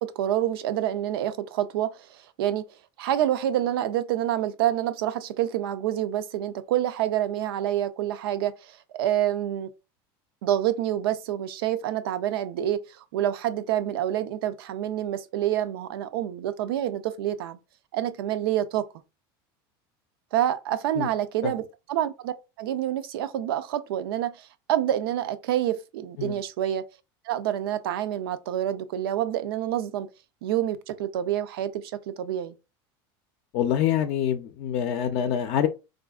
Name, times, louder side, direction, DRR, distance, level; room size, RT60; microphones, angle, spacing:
voice 1, 0.0-2.7 3.0-9.7 10.4-17.6 17.9-18.9 20.3-21.6 21.9-26.8 27.3-30.1 30.4-32.6, right 12 dB, 85° right, 0.4 m, -27 dB
voice 2, 33.5-35.7, left 9 dB, 60° left, 0.5 m, -25 dB
4.0 x 2.5 x 2.3 m
supercardioid pair, 115°, 12 cm